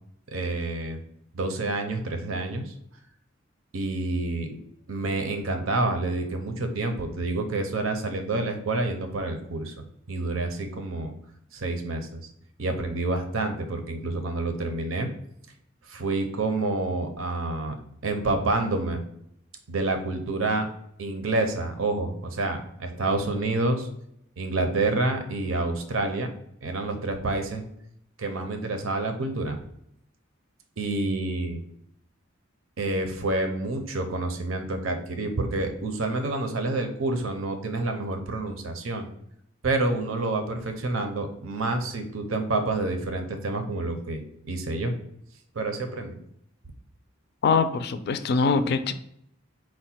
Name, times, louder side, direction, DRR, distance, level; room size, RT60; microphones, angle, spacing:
voice 1, 0.3-1.0 1.3-2.7 3.7-4.6 4.9-9.7 10.1-11.1 11.5-12.2 12.6-15.1 15.9-17.8 18.0-19.0 19.7-20.7 21.0-23.9 24.4-26.3 26.6-27.6 28.2-29.6 30.8-31.6 32.8-39.1 39.6-44.9 45.6-46.2, right 2 dB, 85° right, 0.6 m, -28 dB
voice 2, 47.4-48.9, left 4 dB, 55° left, 0.4 m, -23 dB
4.6 x 2.1 x 4.2 m
head